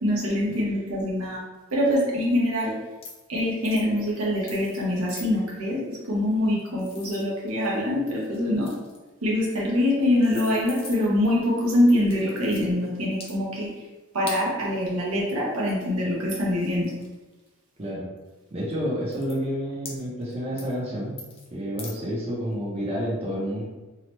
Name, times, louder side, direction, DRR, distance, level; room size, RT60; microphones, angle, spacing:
voice 1, 0.0-1.4 1.7-2.8 3.3-8.7 9.2-13.7 14.1-16.9, left 1 dB, 80° right, -4 dB, 0.8 m, -24 dB
sound 1, 2.9-3.3 3.6-3.9 4.5-4.8 5.1-5.3 6.3-7.8 8.2-9.1 9.8-9.9 10.2-11.2 12.0-12.7 13.1-13.3 14.3-14.4 15.9-16.0 16.3-17.5 18.2-18.3 18.7-18.8 19.1-19.4 19.9-20.3 20.6-20.8 21.2-21.5 21.8-21.9, left 4 dB, 25° left, 0.4 m, -42 dB
voice 2, 17.8-18.1 18.5-21.2 21.5-23.6, equal, 30° right, -6 dB, 0.6 m, -29 dB
2.8 x 2.1 x 2.9 m, 1.2 s
head